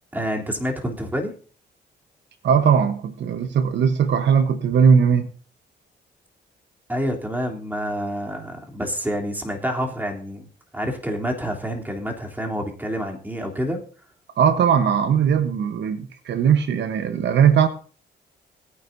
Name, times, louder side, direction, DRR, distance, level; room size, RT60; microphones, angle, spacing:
voice 1, 0.1-1.3 6.9-10.5 10.7-13.8, equal, 10° right, 3.2 m, -28 dB
voice 2, 2.4-5.3 14.4-17.7, right 7 dB, 75° right, 1.1 m, -19 dB
19.5 x 9.6 x 2.7 m
cardioid pair, 75°, 19 cm